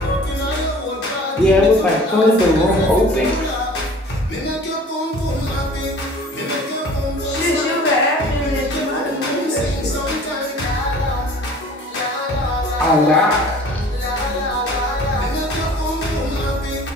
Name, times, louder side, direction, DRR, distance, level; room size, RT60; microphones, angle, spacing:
voice 1, 0.0-1.3 1.9-2.3 2.8-2.9 3.2-3.7 4.4-5.9 6.4-7.7 8.4-9.4 9.9-11.2 11.9-13.2 14.0-16.8, left 1 dB, 70° left, 1.1 m, -23 dB
voice 2, 1.4-3.3 12.8-13.8 15.6-15.7, left 1 dB, 5° left, 0.5 m, -16 dB
voice 3, 7.2-10.0, left 1 dB, 85° left, 0.9 m, -22 dB
5.1 x 2.2 x 2.9 m
head